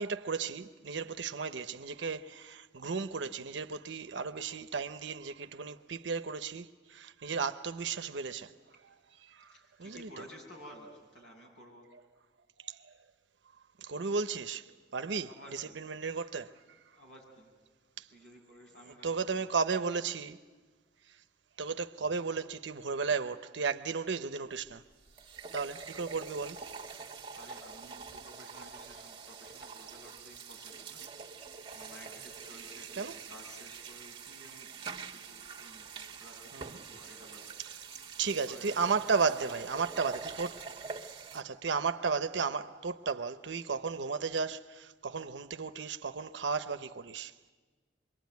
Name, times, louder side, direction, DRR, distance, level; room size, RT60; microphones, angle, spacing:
voice 1, 0.0-8.5 8.8-9.0 9.3-9.5 9.8-10.1 12.6-12.9 13.8-16.5 18.0-18.1 19.0-20.4 21.6-24.8 25.5-26.7 32.9-33.2 36.5-36.8 38.2-40.6 41.3-47.5, right 5 dB, 80° right, 0.7 m, -34 dB
voice 2, 9.5-11.9 15.2-15.8 16.1-16.4 16.9-17.5 18.1-19.5 27.0-31.4 31.7-37.5 38.3-39.7, equal, 90° left, 7.7 m, -54 dB
sound 1, 24.7-24.8 25.1-41.4, right 5 dB, 25° right, 1.4 m, -45 dB
25.5 x 22.5 x 9.4 m
head